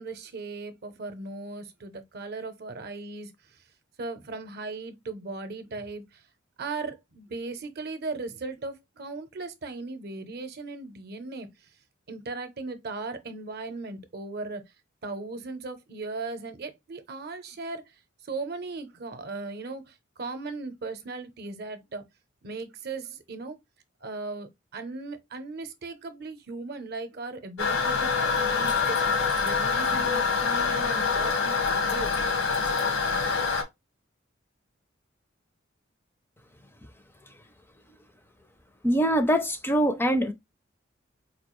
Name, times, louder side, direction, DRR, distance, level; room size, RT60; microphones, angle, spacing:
voice 1, 0.0-3.6 4.0-6.2 6.6-11.7 12.1-14.6 15.0-17.9 18.2-22.0 22.4-23.6 24.0-32.1, right 3 dB, 55° right, 0.6 m, -37 dB
Toilet flush, 27.6-33.6, left 5 dB, 75° left, 0.9 m, -25 dB
voice 2, 38.8-40.3, equal, 10° left, 0.4 m, -23 dB
4.3 x 2.3 x 3.0 m
head